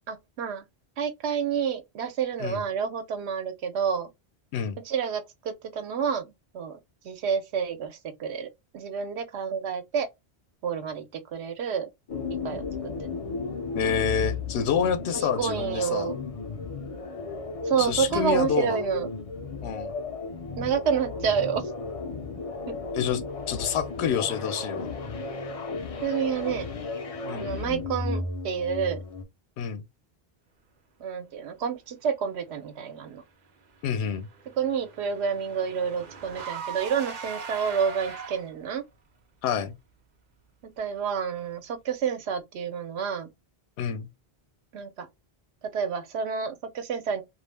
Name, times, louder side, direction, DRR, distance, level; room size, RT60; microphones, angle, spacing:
voice 1, 0.1-0.6 1.0-4.1 4.8-6.8 7.0-10.1 10.6-11.9 12.4-13.1 15.1-16.2 17.6-19.1 20.5-21.6 26.0-26.7 27.3-29.0 31.0-33.2 34.6-38.8 40.8-43.3 44.7-45.1 45.7-47.2, right 7 dB, 85° right, 0.9 m, -29 dB
sound 1, 12.1-29.2, left 4 dB, 50° left, 0.4 m, -34 dB
voice 2, 13.8-16.1 17.8-18.8 19.6-19.9 22.9-24.9 27.2-27.5 29.6-29.8 33.8-34.3 39.4-39.7 43.8-44.1, left 7 dB, 85° left, 0.8 m, -28 dB
Car / Engine, 33.7-38.7, right 5 dB, 50° right, 0.6 m, -40 dB
2.3 x 2.0 x 3.1 m
omnidirectional pair, 1.1 m